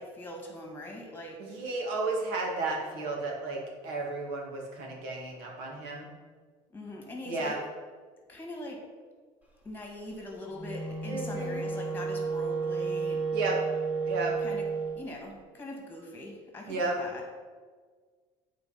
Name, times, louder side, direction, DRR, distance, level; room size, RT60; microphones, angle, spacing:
voice 1, 0.0-1.6 6.7-7.6 8.3-8.8 9.6-13.3 14.4-14.7 14.9-17.4, left 1 dB, 15° left, 1 dB, 2.0 m, -42 dB
voice 2, 1.4-6.1 7.3-7.6 11.1-11.6 13.3-13.6 14.1-14.3 16.7-17.0, right 3 dB, 85° right, -1 dB, 2.2 m, -33 dB
Wind instrument woodwind instrument, 10.5-15.0, right 4 dB, 10° right, 1.4 m, -32 dB
8.8 x 4.5 x 5.7 m, 1.5 s
cardioid pair, 130°, 15 cm